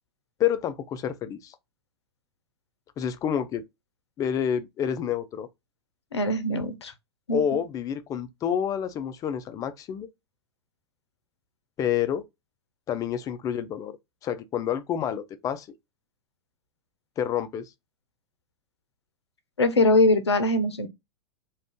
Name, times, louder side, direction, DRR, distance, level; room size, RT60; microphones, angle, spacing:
voice 1, 0.4-1.5 3.0-3.6 4.2-5.5 7.3-10.1 11.8-12.2 12.9-13.9 14.2-15.7 17.2-17.7, left 9 dB, 25° left, 0.4 m, -28 dB
voice 2, 6.1-6.9 7.3-7.6 19.6-20.9, left 2 dB, 85° left, 0.5 m, -22 dB
2.4 x 2.3 x 3.4 m
figure-of-eight pair, 95°, 14 cm